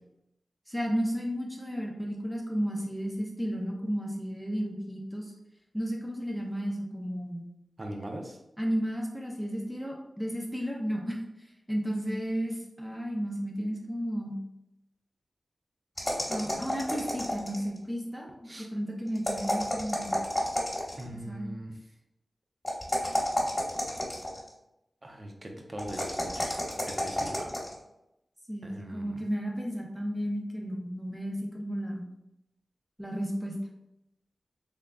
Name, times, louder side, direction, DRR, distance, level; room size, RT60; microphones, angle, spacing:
voice 1, 0.7-5.3 5.7-7.5 8.6-11.2 11.7-14.4 16.3-18.3 18.6-20.2 21.3-21.5 28.5-32.0 33.0-33.5, equal, ahead, -1 dB, 0.7 m, -33 dB
voice 2, 7.8-8.4 18.5-18.7 21.0-21.8 25.0-26.5 26.8-27.5 28.6-29.2, right 1 dB, 35° right, 2 dB, 0.7 m, -41 dB
sound 1, 16.0-17.8 19.2-21.1 22.6-24.5 25.8-27.7, left 1 dB, 25° left, 1.3 m, -31 dB
3.6 x 3.6 x 2.2 m, 0.87 s
wide cardioid pair, 75°, 0 cm